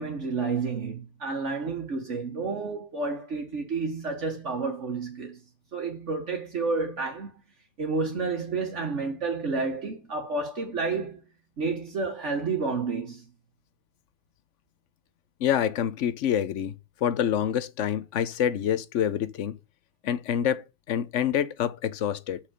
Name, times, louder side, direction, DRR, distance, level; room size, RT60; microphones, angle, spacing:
voice 1, 0.0-5.4 5.7-7.3 7.8-11.2 11.6-13.2, right 4 dB, 70° right, 1.8 m, -30 dB
voice 2, 15.4-16.7 17.0-19.6 20.0-22.4, left 9 dB, 75° left, 1.0 m, -27 dB
6.1 x 5.8 x 6.9 m
omnidirectional pair, 1.3 m